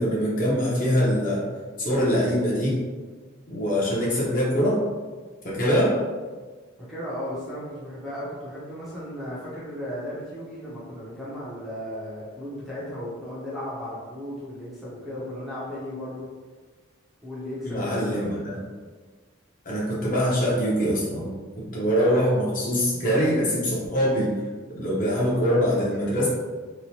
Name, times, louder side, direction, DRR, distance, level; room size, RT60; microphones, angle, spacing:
voice 1, 0.0-1.4 1.8-2.8 3.5-4.8 5.4-6.0 17.6-18.3 19.6-21.3 21.7-24.4 24.7-26.3, equal, 40° left, -6 dB, 0.7 m, -23 dB
voice 2, 6.8-16.3 17.2-18.4, left 1 dB, ahead, -10 dB, 0.6 m, -35 dB
3.0 x 2.1 x 2.8 m, 1.4 s
head